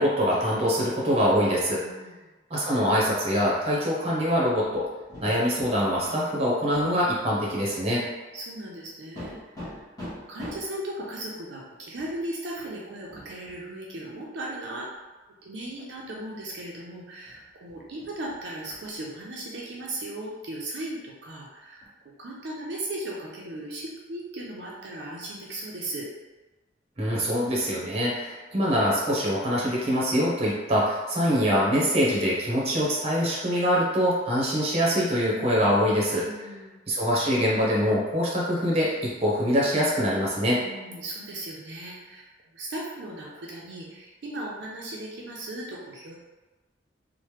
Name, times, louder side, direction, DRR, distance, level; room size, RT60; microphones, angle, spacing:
voice 1, 0.0-1.8 2.5-4.8 5.2-8.0 27.0-36.3 36.9-40.6, equal, 35° right, -5 dB, 0.7 m, -24 dB
voice 2, 1.8-2.1 7.9-8.0 8.3-14.9 15.4-21.8 22.2-26.1 36.2-36.7 40.6-46.1, right 1 dB, 70° right, -4 dB, 0.4 m, -37 dB
sound 1, 4.6-6.2 6.7-7.2 7.6-7.7 9.2-10.8 12.0-12.2 12.5-12.7 13.0-13.6 14.9-15.0 15.6-16.0 16.4-16.9 17.3-18.9 21.8-21.9, left 1 dB, 20° left, 1.1 m, -43 dB
3.0 x 2.1 x 3.1 m, 1.2 s
head